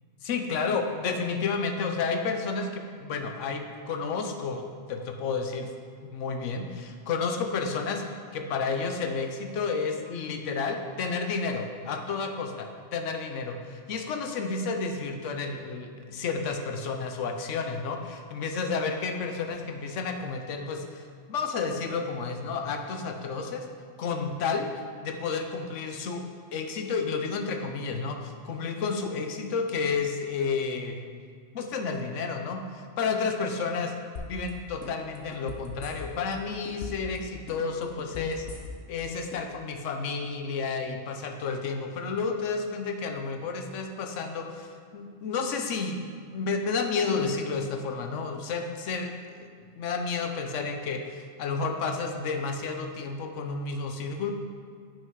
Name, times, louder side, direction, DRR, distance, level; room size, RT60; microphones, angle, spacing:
voice 1, 0.2-5.7 6.1-8.0 8.3-21.0 21.3-23.7 24.0-24.7 25.0-26.2 26.5-31.0 31.5-33.9 34.2-38.5 38.9-46.0 46.3-49.5 49.8-54.3, left 4 dB, 85° left, 5 dB, 1.1 m, -31 dB
sound 1, 34.2-34.5 34.8-36.3 36.7-37.2 37.5-39.0 39.3-39.4, left 5 dB, 65° left, 1.2 m, -39 dB
8.8 x 5.6 x 4.7 m, 2.1 s
omnidirectional pair, 1.2 m